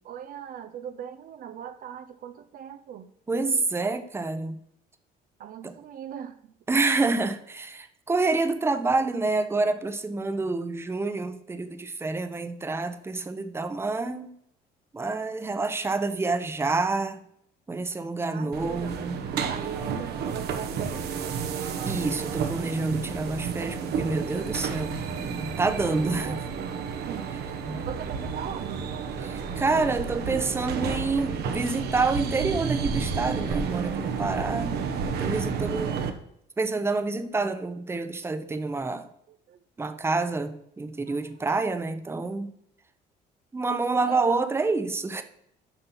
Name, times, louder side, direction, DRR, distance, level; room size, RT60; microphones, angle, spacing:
voice 1, 0.0-3.1 3.8-4.0 5.4-6.5 18.3-19.1 19.5-21.1 25.8-27.4 27.8-28.9 39.3-39.6 41.1-41.2 44.0-44.5, right 9 dB, 55° right, 0.6 m, -40 dB
voice 2, 3.3-4.6 5.6-5.7 6.7-14.3 14.9-17.2 17.7-19.2 21.8-26.4 27.7-27.9 29.2-34.8 35.1-36.0 36.6-39.1 39.8-42.5 43.5-45.2, right 3 dB, 15° right, 0.7 m, -28 dB
sound 1, 18.5-36.1, right 6 dB, 70° right, 1.1 m, -31 dB
6.9 x 5.7 x 5.8 m
cardioid pair, 110°, 17 cm